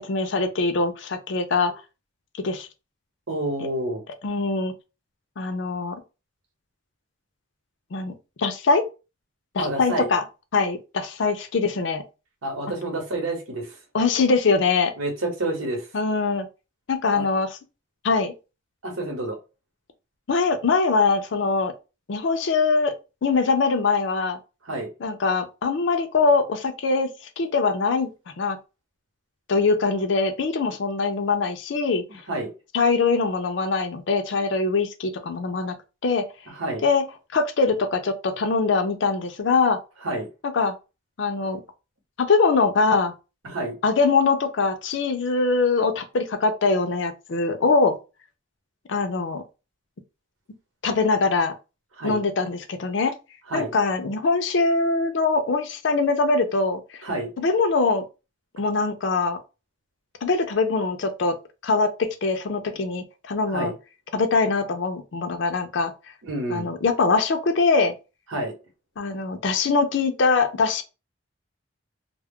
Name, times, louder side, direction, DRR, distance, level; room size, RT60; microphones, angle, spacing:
voice 1, 0.0-1.7 2.4-2.7 4.2-4.7 5.4-6.0 7.9-8.9 9.5-10.2 10.5-12.0 13.9-14.9 15.9-16.5 16.9-17.5 18.0-18.3 20.3-21.7 22.1-22.9 23.2-24.4 25.0-28.1 28.4-28.6 29.5-32.0 32.7-35.7 36.0-36.3 36.8-37.0 37.3-39.8 40.5-40.7 41.2-41.6 42.2-43.1 43.8-48.0 48.9-49.4 50.8-51.5 52.0-53.1 53.5-56.8 57.4-58.0 58.6-59.4 60.2-61.4 61.6-63.7 64.1-65.9 66.5-67.9 69.0-70.8, left 4 dB, 65° left, 0.5 m, -22 dB
voice 2, 3.3-4.0 9.6-10.1 12.4-13.8 15.0-15.9 17.1-17.3 18.8-19.4 24.6-24.9 32.3-32.5 36.5-36.8 40.0-40.3 41.4-41.5 43.4-43.7 52.0-52.2 53.5-53.7 57.0-57.3 63.5-63.7 66.2-66.7 68.3-68.5, right 1 dB, 90° right, 0.9 m, -28 dB
2.2 x 2.0 x 3.5 m
head